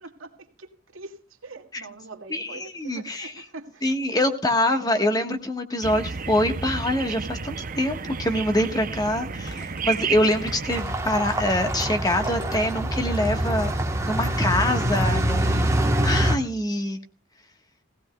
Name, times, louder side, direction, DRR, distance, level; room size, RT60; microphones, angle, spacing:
voice 1, 0.0-3.8 4.1-4.4, right 3 dB, 80° right, 2.1 m, -43 dB
voice 2, 2.3-3.4 3.8-13.7 14.0-17.0, left 1 dB, 20° left, 1.3 m, -25 dB
sound 1, 5.8-10.8, right 5 dB, 40° right, 0.6 m, -32 dB
sound 2, 8.3-8.4 9.3-12.7 13.0-13.5 13.9-14.0, left 1 dB, 70° left, 7.0 m, -44 dB
sound 3, 10.7-16.4, right 1 dB, 15° right, 1.1 m, -24 dB
18.0 x 17.0 x 2.3 m
head